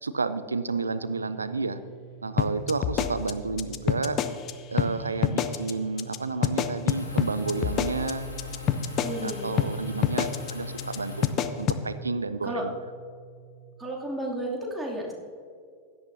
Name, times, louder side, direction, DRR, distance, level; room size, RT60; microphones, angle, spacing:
voice 1, 0.0-1.8 2.2-4.2 4.7-8.3 9.2-11.3 11.6-12.7, right 4 dB, 75° right, 13 dB, 0.6 m, -31 dB
sound 1, 0.9-13.8, right 9 dB, 40° right, 1.4 m, -48 dB
sound 2, 2.4-4.5 4.8-4.9 5.2-5.7 6.0-6.2 6.4-9.3 9.6-9.7 10.0-10.5 10.8-11.0 11.2-11.8, left 10 dB, 35° left, 0.6 m, -26 dB
sound 3, 6.9-11.3, left 4 dB, 80° left, 2.8 m, -39 dB
voice 2, 9.0-9.5 12.4-12.7 13.8-15.1, right 1 dB, 10° right, -3 dB, 2.7 m, -32 dB
16.5 x 12.0 x 2.7 m, 2.2 s
figure-of-eight pair, 90°, 0 cm